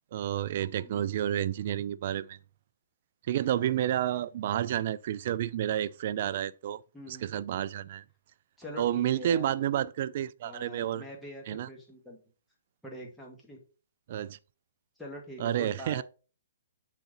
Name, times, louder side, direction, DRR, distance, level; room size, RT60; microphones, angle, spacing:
voice 1, 0.1-2.4 3.3-6.8 7.1-8.0 8.8-11.0 11.5-11.7 14.1-14.4 15.4-16.0, right 11 dB, 50° right, 0.3 m, -30 dB
voice 2, 0.8-1.1 6.9-7.3 8.6-9.5 10.4-12.2 12.8-13.6 15.0-16.0, left 1 dB, ahead, 1.7 m, -44 dB
6.8 x 4.0 x 4.0 m
hypercardioid pair, 140°, 0 cm